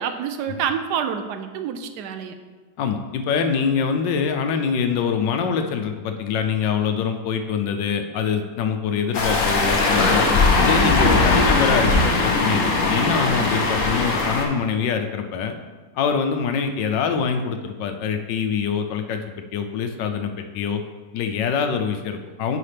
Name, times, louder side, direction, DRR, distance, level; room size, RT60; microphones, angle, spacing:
voice 1, 0.0-2.4 13.2-13.5, right 7 dB, 75° right, 8 dB, 1.1 m, -28 dB
voice 2, 2.8-10.2 10.6-15.5 15.9-19.2 19.5-20.8 21.1-22.6, left 6 dB, 90° left, 6 dB, 1.3 m, -24 dB
sound 1, 9.1-14.5, left 3 dB, 55° left, 1.1 m, -19 dB
9.6 x 5.0 x 3.4 m, 1.4 s
omnidirectional pair, 1.9 m